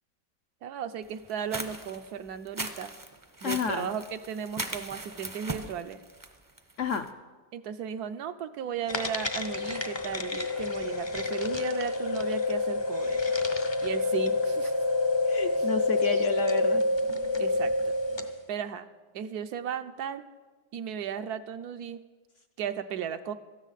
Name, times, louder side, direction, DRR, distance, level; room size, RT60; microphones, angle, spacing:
voice 1, 0.6-2.9 3.4-6.0 7.5-13.2 13.8-14.7 15.6-15.7 17.4-17.9 18.5-18.9 19.1-20.3 20.7-22.0 22.6-23.3, right 8 dB, 75° right, 9 dB, 1.2 m, -35 dB
sound 1, 1.3-7.1, right 2 dB, 20° right, 0.6 m, -39 dB
voice 2, 3.4-3.9 6.8-7.1 15.3-16.8, left 6 dB, 65° left, 6 dB, 0.8 m, -31 dB
sound 2, 8.9-18.4, left 2 dB, 30° left, 0.5 m, -28 dB
17.5 x 13.0 x 4.0 m, 1.3 s
omnidirectional pair, 1.8 m